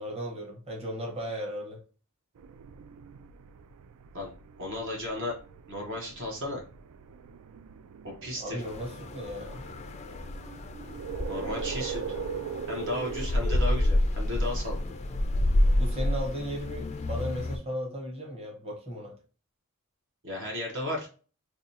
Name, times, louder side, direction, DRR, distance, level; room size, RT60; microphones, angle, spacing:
voice 1, 0.0-1.8 8.4-9.7 15.2-15.3 15.7-19.2, equal, 30° right, 1.1 m, -36 dB
sound 1, 2.4-13.3, right 8 dB, 80° right, 0.3 m, -41 dB
voice 2, 4.6-5.3 5.7-6.6 8.0-8.6 11.3-12.0 12.7-14.8 20.2-21.1, left 1 dB, 60° right, 1.1 m, -34 dB
sound 2, 8.6-17.6, left 1 dB, 30° left, 0.3 m, -29 dB
4.7 x 2.3 x 2.8 m
head